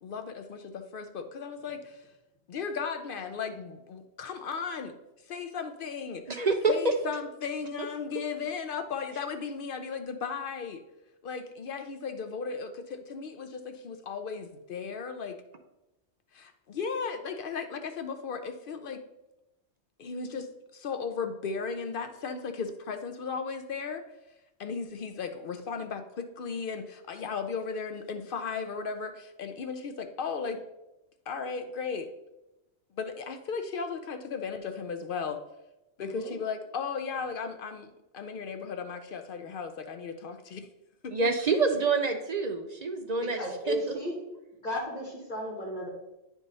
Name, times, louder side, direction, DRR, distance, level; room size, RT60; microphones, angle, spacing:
voice 1, 0.0-2.0 2.5-5.0 5.3-6.3 6.7-10.8 11.2-15.4 16.3-19.0 20.0-24.0 24.6-30.6 31.3-32.1 33.0-35.4 36.0-40.7 41.0-41.3, left 5 dB, 60° left, 7 dB, 0.7 m, -36 dB
voice 2, 6.3-6.9 41.1-43.8, right 3 dB, 50° right, 6 dB, 0.5 m, -27 dB
voice 3, 36.0-36.3 43.2-44.2 44.6-45.9, equal, 40° left, -2 dB, 2.0 m, -34 dB
9.7 x 3.6 x 4.0 m, 0.96 s
omnidirectional pair, 1.2 m